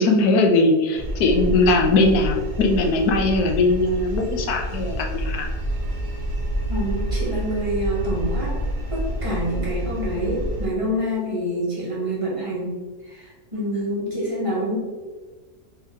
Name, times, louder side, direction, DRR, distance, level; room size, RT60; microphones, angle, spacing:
voice 1, 0.0-5.5, left 2 dB, 75° left, 2 dB, 1.2 m, -20 dB
sound 1, 1.0-10.7, right 1 dB, 45° right, 0.4 m, -28 dB
voice 2, 6.7-8.6 8.9-14.8, equal, 20° right, -5 dB, 1.4 m, -27 dB
4.2 x 3.5 x 3.6 m, 1.3 s
omnidirectional pair, 1.6 m